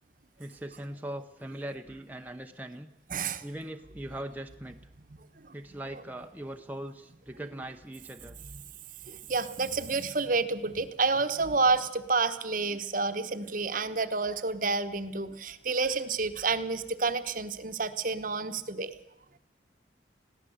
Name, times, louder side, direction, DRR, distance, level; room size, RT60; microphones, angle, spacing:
voice 1, 0.4-2.9 3.4-4.8 5.5-8.4, right 1 dB, 10° right, 4 dB, 0.8 m, -40 dB
voice 2, 3.1-3.4 5.4-5.5 5.9-6.0 9.1-18.9, right 4 dB, 45° right, 10 dB, 1.1 m, -29 dB
21.0 x 15.5 x 7.9 m, 0.90 s
head